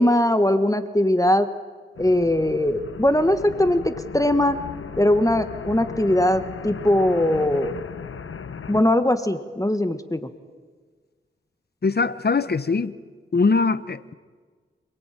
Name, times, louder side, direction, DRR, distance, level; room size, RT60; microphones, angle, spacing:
voice 1, 0.0-1.5 2.0-4.6 5.0-7.8 8.7-10.3, left 1 dB, 15° left, 1.4 m, -20 dB
sound 1, 2.0-8.8, left 6 dB, 80° left, 1.0 m, -36 dB
voice 2, 11.8-12.9 13.3-14.1, left 4 dB, 50° left, 1.1 m, -22 dB
26.5 x 19.0 x 8.9 m
cardioid pair, 45°, 21 cm